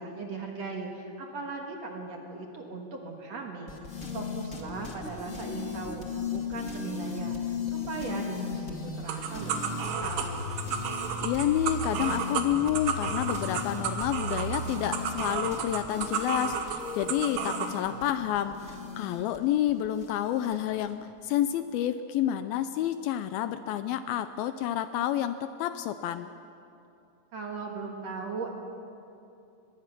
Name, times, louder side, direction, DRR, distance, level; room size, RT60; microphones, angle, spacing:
voice 1, 0.0-10.5 27.3-28.5, right 3 dB, 55° right, 1 dB, 2.2 m, -39 dB
sound 1, 3.7-20.9, left 3 dB, 30° left, 1.4 m, -37 dB
sound 2, 9.1-17.7, right 7 dB, 80° right, 3.4 m, -33 dB
voice 2, 11.2-26.3, left 11 dB, 80° left, 11 dB, 2.3 m, -29 dB
24.0 x 20.5 x 6.1 m, 2.7 s
omnidirectional pair, 4.6 m